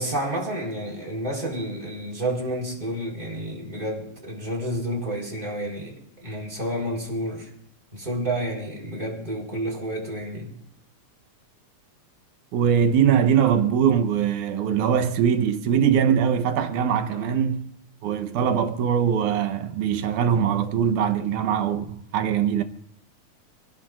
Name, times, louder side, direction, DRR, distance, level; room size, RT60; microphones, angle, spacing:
voice 1, 0.0-5.9 6.2-7.5 7.9-10.5 17.1-17.4, right 1 dB, 15° right, 4.2 m, -30 dB
voice 2, 12.5-17.7 18.0-22.6, right 8 dB, 85° right, 2.5 m, -22 dB
28.5 x 17.0 x 2.5 m
omnidirectional pair, 3.4 m